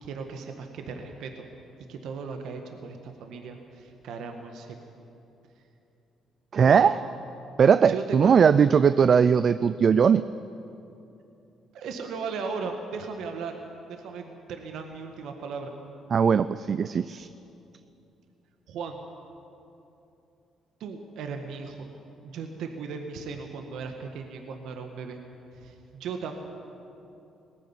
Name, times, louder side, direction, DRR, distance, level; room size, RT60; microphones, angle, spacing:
voice 1, 0.0-1.4 1.9-4.8 6.6-6.9 7.9-8.3 11.7-13.5 13.9-15.7 18.7-19.0 20.8-21.9 22.2-25.2 25.5-26.3, right 5 dB, 75° right, 4 dB, 1.7 m, -36 dB
voice 2, 6.5-6.9 7.6-10.3 16.1-17.3, right 6 dB, 50° right, 14 dB, 0.5 m, -19 dB
19.0 x 14.5 x 9.9 m, 2.7 s
supercardioid pair, 70°, 0 cm